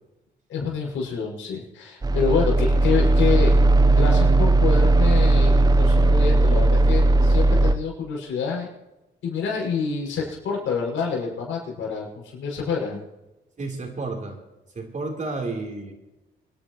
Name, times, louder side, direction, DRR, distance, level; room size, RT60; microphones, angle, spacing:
voice 1, 0.5-3.6 4.0-8.7 9.2-12.1 12.3-13.0, left 5 dB, 75° left, -3 dB, 6.5 m, -27 dB
sound 1, 2.0-7.7, right 2 dB, 20° right, 0.9 m, -17 dB
voice 2, 13.6-14.4 14.7-15.9, right 3 dB, 40° right, 1 dB, 3.8 m, -31 dB
27.0 x 10.5 x 3.1 m, 1.0 s
cardioid pair, 90°, 20 cm